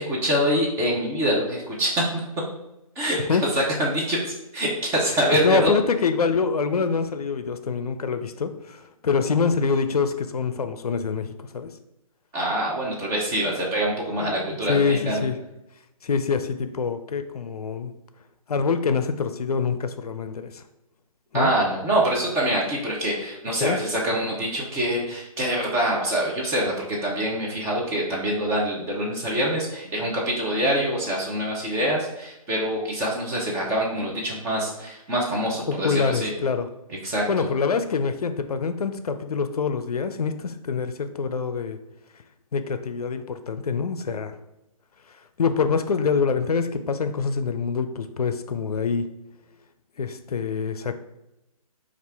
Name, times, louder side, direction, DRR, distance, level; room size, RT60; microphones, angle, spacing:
voice 1, 0.0-2.2 3.0-3.2 3.5-5.7 12.3-15.3 21.3-36.3 37.0-37.5, right 1 dB, 15° right, -3 dB, 0.6 m, -25 dB
voice 2, 5.4-11.7 14.2-15.4 16.0-17.9 18.5-20.6 21.3-21.5 23.6-23.8 35.7-36.7 37.3-41.8 42.5-44.3 45.4-49.1 50.0-51.0, left 5 dB, 90° left, 9 dB, 0.5 m, -25 dB
4.2 x 2.5 x 3.4 m, 0.90 s
hypercardioid pair, 150°, 19 cm